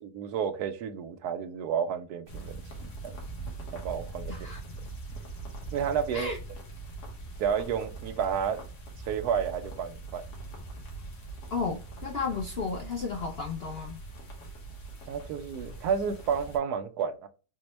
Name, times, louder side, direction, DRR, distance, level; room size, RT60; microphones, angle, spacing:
voice 1, 0.0-2.6 3.0-3.2 3.7-4.5 5.7-6.3 7.4-8.6 9.1-10.2 15.1-17.3, right 7 dB, 80° right, 9 dB, 1.1 m, -31 dB
sound 1, 2.3-16.6, right 3 dB, 80° left, 1.7 m, -42 dB
voice 2, 4.3-4.6 6.1-6.4 11.5-14.0, left 5 dB, 60° left, 0 dB, 0.6 m, -33 dB
4.3 x 2.1 x 3.0 m, 0.34 s
omnidirectional pair, 1.7 m